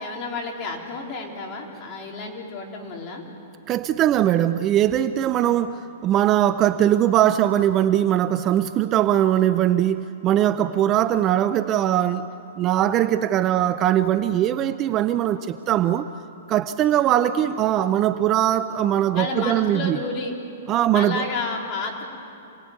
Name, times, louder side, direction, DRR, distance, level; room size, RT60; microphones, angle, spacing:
voice 1, 0.0-3.2 19.1-20.3 20.9-22.0, left 3 dB, 30° left, -1 dB, 3.9 m, -31 dB
voice 2, 3.7-12.3 12.6-16.1 16.5-20.0 20.7-21.2, right 11 dB, 25° right, 12 dB, 0.6 m, -21 dB
27.5 x 19.0 x 9.5 m, 2.6 s
hypercardioid pair, 155°, 0 cm